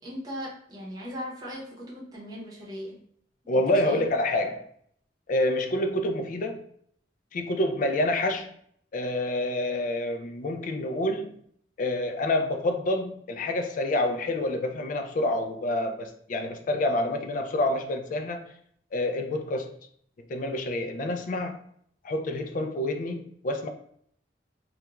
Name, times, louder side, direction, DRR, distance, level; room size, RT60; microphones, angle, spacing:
voice 1, 0.0-3.0 3.5-4.1, equal, 20° right, -4 dB, 0.8 m, -38 dB
voice 2, 3.5-4.7 5.3-6.6 7.3-8.5 8.9-11.4 11.8-18.5 18.9-19.8 20.3-21.6 22.0-23.7, left 1 dB, 45° left, 5 dB, 0.3 m, -27 dB
2.4 x 2.2 x 2.9 m, 0.65 s
head